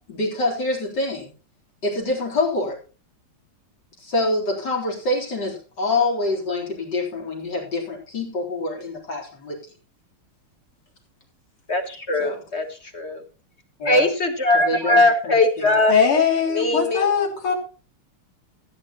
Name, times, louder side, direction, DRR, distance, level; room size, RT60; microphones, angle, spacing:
voice 1, 0.1-1.3 1.8-2.8 4.0-9.6 12.2-12.4 13.8-14.1 14.7-15.8, left 2 dB, 50° left, 0 dB, 4.3 m, -26 dB
voice 2, 11.7-12.6 12.9-13.2 13.8-15.9 16.5-17.0, left 2 dB, 35° left, 6 dB, 1.3 m, -20 dB
voice 3, 15.9-17.5, left 6 dB, 75° left, 2 dB, 3.8 m, -20 dB
15.5 x 9.8 x 3.0 m, 0.34 s
omnidirectional pair, 2.4 m